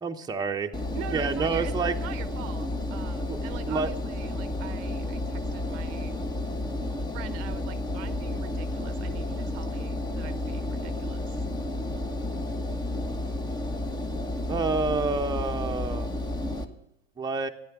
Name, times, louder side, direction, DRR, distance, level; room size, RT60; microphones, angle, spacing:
voice 1, 0.0-0.7 1.1-1.9 3.3-3.4 3.7-3.9 14.5-16.1 17.2-17.5, right 4 dB, 10° right, 3 dB, 1.0 m, -28 dB
Engine, 0.7-16.6, left 1 dB, 15° left, 1.2 m, -31 dB
voice 2, 0.9-6.2 7.1-11.5, right 12 dB, 50° right, 14 dB, 0.9 m, -43 dB
14.0 x 10.0 x 6.0 m, 0.87 s
hypercardioid pair, 95°, 32 cm